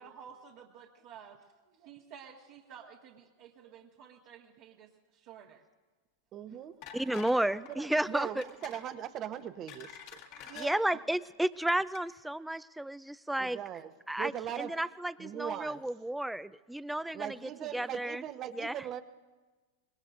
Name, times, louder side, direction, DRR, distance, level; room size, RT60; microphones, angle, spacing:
voice 1, 0.0-5.6 10.3-10.8, right 8 dB, 60° right, -3 dB, 1.7 m, -51 dB
voice 2, 6.3-6.7 7.7-10.0 13.4-13.9 14.2-14.7 15.2-15.8 17.1-19.0, right 10 dB, 40° right, 10 dB, 0.9 m, -39 dB
sound 1, 6.8-7.4 7.7-7.9 8.4-8.9 9.4-10.7 11.5-11.6 11.9-12.0, left 8 dB, 60° left, 1.9 m, -48 dB
voice 3, 6.9-8.4 10.4-13.6 14.1-17.4 17.7-18.2 18.6-18.7, right 1 dB, 5° right, 16 dB, 0.4 m, -32 dB
25.0 x 21.0 x 2.6 m, 1.3 s
hypercardioid pair, 105°, 0 cm